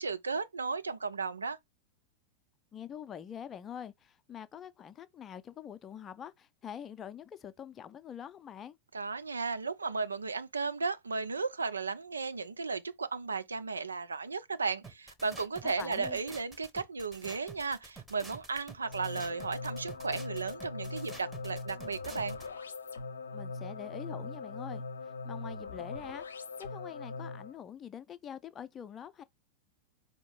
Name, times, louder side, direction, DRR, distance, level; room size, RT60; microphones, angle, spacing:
voice 1, 0.0-1.6 8.9-22.4, right 4 dB, 75° right, 0.4 m, -35 dB
voice 2, 2.7-8.8 15.6-16.2 23.3-24.8 25.2-29.2, left 9 dB, 25° left, 0.4 m, -45 dB
sound 1, 14.8-22.5, right 3 dB, 10° right, 0.9 m, -49 dB
sound 2, 18.8-27.6, left 3 dB, 70° left, 0.6 m, -41 dB
4.3 x 2.8 x 3.1 m
figure-of-eight pair, 90°, 0 cm